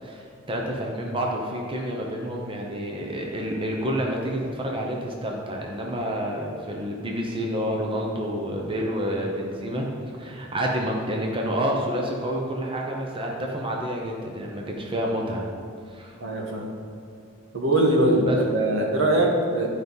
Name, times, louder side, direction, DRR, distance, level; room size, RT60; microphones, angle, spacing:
voice 1, 0.0-9.9 10.2-15.5 15.9-16.2 18.3-18.4, equal, 25° right, -1 dB, 0.9 m, -29 dB
voice 2, 16.2-16.7 17.5-19.7, right 1 dB, 75° right, 0 dB, 1.4 m, -22 dB
12.0 x 5.3 x 4.1 m, 2.3 s
head